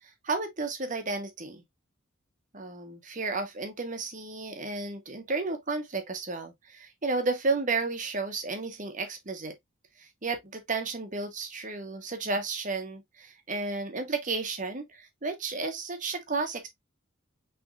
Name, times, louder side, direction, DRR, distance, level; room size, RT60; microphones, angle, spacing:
voice 1, 0.2-1.6 2.5-9.5 10.0-16.7, right 3 dB, 40° right, 1.1 m, -32 dB
6.1 x 3.4 x 2.5 m
head